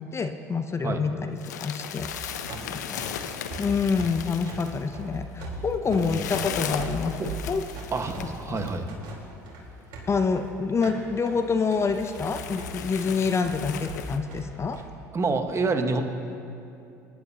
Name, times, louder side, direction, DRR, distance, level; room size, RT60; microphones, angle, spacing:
voice 1, 0.0-3.0 3.6-7.6 8.2-8.6 10.1-14.8, left 5 dB, 30° left, 8 dB, 0.7 m, -27 dB
sound 1, 1.3-8.8 9.6-9.7 10.0-10.1 10.8-10.9 11.3-11.4 11.9-14.2, left 9 dB, 85° left, 0.6 m, -36 dB
sound 2, 1.8-14.9, right 2 dB, 60° right, 3.8 m, -40 dB
voice 2, 2.5-3.6 5.9-6.2 7.2-7.3 7.9-8.9 15.1-16.0, right 3 dB, 30° right, 6 dB, 1.4 m, -29 dB
23.0 x 11.0 x 2.9 m, 2.6 s
hypercardioid pair, 65°, 9 cm